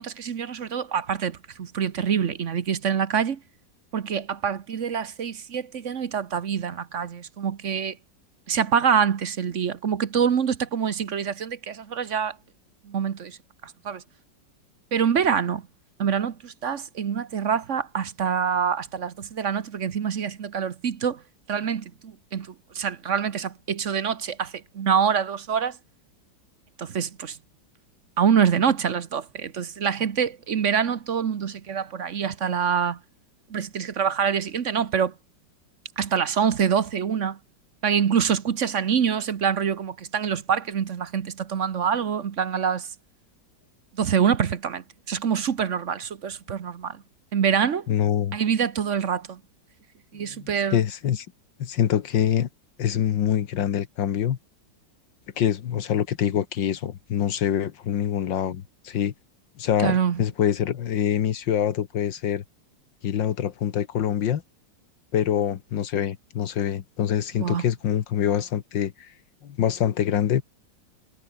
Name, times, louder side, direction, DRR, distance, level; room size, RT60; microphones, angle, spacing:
voice 1, 0.0-3.4 3.9-8.0 8.5-12.4 12.8-13.4 13.6-14.0 14.9-15.6 16.0-21.2 21.5-25.8 26.8-27.4 28.2-33.0 33.5-35.1 36.0-37.4 37.8-42.9 43.9-47.0 47.3-47.9 48.3-49.4 50.1-50.8 59.8-60.2 67.4-67.6, right 7 dB, 50° right, 1.2 m, -25 dB
voice 2, 47.9-48.4 50.2-51.3 51.6-52.5 52.8-54.4 55.4-59.1 59.6-62.4 63.0-64.4 65.1-69.1 69.4-70.4, left 9 dB, 80° left, 1.9 m, -25 dB
omnidirectional pair, 2.0 m